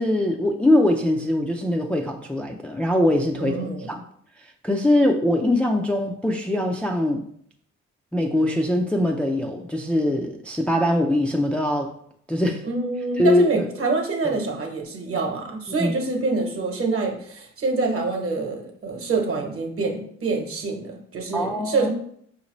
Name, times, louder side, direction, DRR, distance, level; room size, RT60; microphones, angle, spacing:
voice 1, 0.0-3.6 3.9-4.0 4.4-7.3 8.1-11.9 12.3-12.6 13.2-13.7 15.7-15.9 21.3-21.9, left 1 dB, 5° left, 1 dB, 0.3 m, -22 dB
voice 2, 3.3-3.9 12.6-21.9, right 3 dB, 45° right, 2 dB, 1.0 m, -26 dB
5.0 x 2.7 x 3.0 m, 0.66 s
cardioid pair, 90°, 30 cm